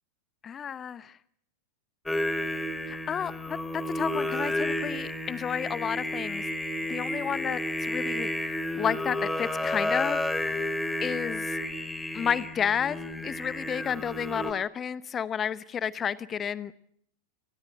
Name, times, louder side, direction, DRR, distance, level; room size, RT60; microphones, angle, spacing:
voice 1, 0.4-1.2 2.9-6.4 6.9-8.3 8.7-10.3 10.5-10.7 11.0-11.6 12.1-13.0 13.2-16.7, left 8 dB, 25° left, 18 dB, 0.9 m, -31 dB
Singing, 2.1-14.5, left 1 dB, 5° left, 3.1 m, -31 dB
29.0 x 19.5 x 7.6 m, 0.70 s
figure-of-eight pair, 90°, 0 cm